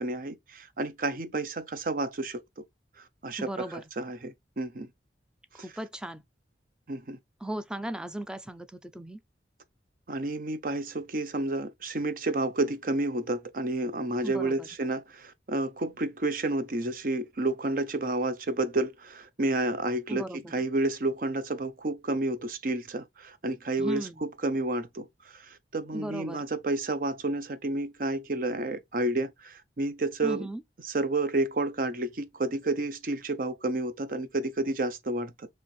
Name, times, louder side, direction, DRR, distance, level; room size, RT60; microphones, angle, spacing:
voice 1, 0.0-2.6 3.0-4.9 6.9-7.2 10.1-25.1 25.3-30.5 30.8-35.5, right 2 dB, 50° right, 0.6 m, -30 dB
voice 2, 3.4-3.8 5.5-6.2 7.4-9.2 14.2-14.7 20.1-20.5 23.8-24.2 25.9-26.5 30.2-30.6, right 1 dB, 5° right, 0.4 m, -37 dB
4.3 x 3.1 x 3.1 m
head